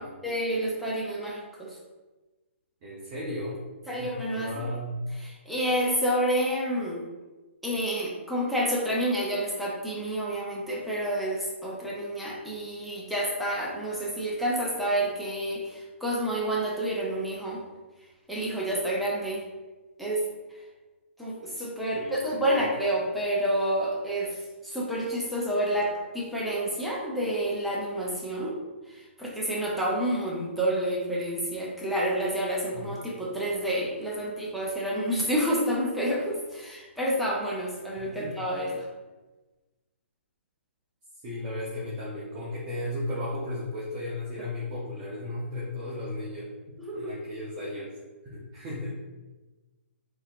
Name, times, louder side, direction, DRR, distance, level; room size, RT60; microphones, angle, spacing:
voice 1, 0.2-1.8 3.9-4.5 5.2-7.0 7.6-17.6 18.3-19.4 20.0-20.2 21.2-28.6 28.9-38.9 46.8-47.1, right 1 dB, ahead, -5 dB, 0.6 m, -29 dB
voice 2, 2.8-3.6 4.0-5.1 21.9-22.6 32.7-32.8 38.0-38.4 41.2-46.5 46.9-47.9 48.2-48.9, left 1 dB, 30° right, -6 dB, 0.8 m, -35 dB
3.9 x 2.9 x 2.5 m, 1.2 s
hypercardioid pair, 150°, 7 cm